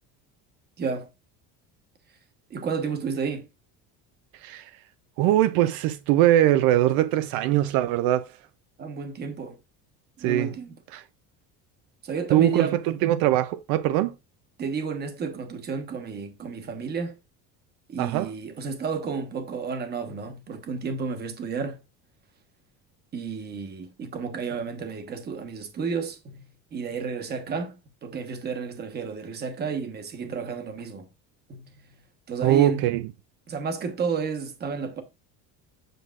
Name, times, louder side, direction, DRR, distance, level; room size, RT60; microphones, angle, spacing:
voice 1, 0.8-1.1 2.5-3.5 8.8-9.6 10.2-10.8 12.0-12.8 14.6-17.1 17.9-21.8 23.1-26.4 26.7-31.1 31.5-31.6 32.3-32.8 33.5-35.0, right 5 dB, 30° right, 1.1 m, -31 dB
voice 2, 4.4-4.7 5.2-8.3 10.2-10.5 10.9-11.0 12.3-14.1 18.0-18.3 32.4-33.1, right 13 dB, 75° right, 0.6 m, -22 dB
7.9 x 6.2 x 2.4 m
cardioid pair, 165°, 35 cm